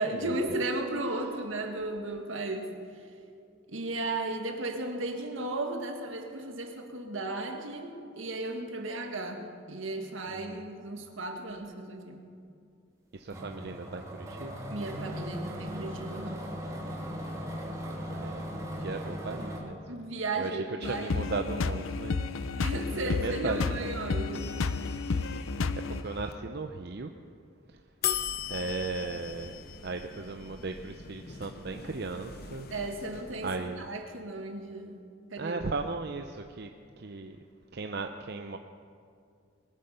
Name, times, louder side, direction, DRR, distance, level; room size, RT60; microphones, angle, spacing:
voice 1, 0.0-2.7 3.7-12.3 14.7-16.5 19.9-21.2 22.6-24.5 32.7-35.0 35.3-35.7, right 2 dB, 75° right, 4 dB, 1.9 m, -35 dB
voice 2, 10.3-10.6 13.1-14.6 18.1-18.4 18.8-19.8 20.4-22.4 22.9-23.9 25.9-27.1 28.5-32.7 33.4-33.9 35.4-36.7 37.0-37.4 37.7-38.6, right 3 dB, 55° right, 5 dB, 0.6 m, -36 dB
sound 1, 13.3-19.6, equal, 15° right, 2.8 m, -38 dB
sound 2, 20.8-26.0, left 4 dB, 85° left, 0.6 m, -31 dB
sound 3, 24.3-26.3 28.0-34.0, left 9 dB, 50° left, 0.8 m, -40 dB
21.0 x 9.8 x 6.8 m, 2.4 s
head